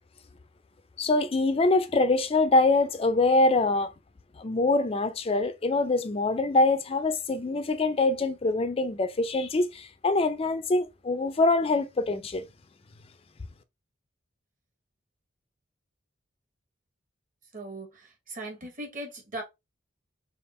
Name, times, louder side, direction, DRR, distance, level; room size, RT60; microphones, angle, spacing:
voice 1, 1.0-3.9 4.4-12.5, left 2 dB, 30° left, 0.4 m, -24 dB
voice 2, 17.5-19.4, right 1 dB, 40° right, 1.3 m, -39 dB
3.5 x 2.4 x 4.1 m
head